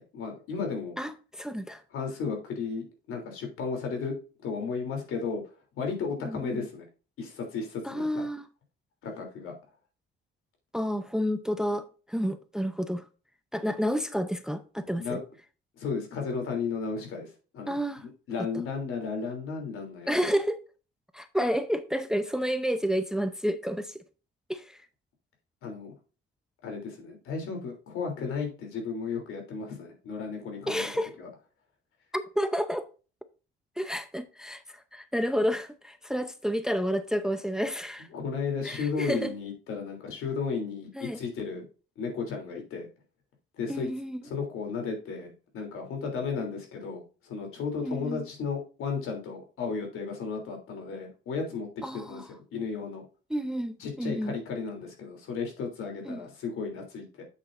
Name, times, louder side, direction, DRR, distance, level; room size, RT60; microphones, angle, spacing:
voice 1, 0.0-1.0 1.9-4.1 4.4-5.4 5.8-6.8 7.2-8.3 9.0-9.5 14.9-15.2 15.8-17.8 18.3-20.1 25.6-25.9 26.6-30.9 31.2-31.3 38.1-41.7 42.0-42.9 43.6-43.9 44.2-51.7 52.1-53.0 53.8-57.3, left 5 dB, 80° left, 3.3 m, -34 dB
voice 2, 1.0-1.8 6.3-6.7 7.8-8.5 10.7-13.0 13.5-15.2 17.7-18.0 18.4-18.5 20.1-20.6 21.1-24.0 24.5-24.8 30.7-31.1 32.1-32.9 33.8-38.1 38.6-39.3 41.0-41.2 43.7-44.2 47.8-48.3 51.8-52.3 53.3-54.4 56.1-56.2, equal, 5° right, 0.6 m, -30 dB
8.1 x 7.2 x 2.6 m
cardioid pair, 125°, 21 cm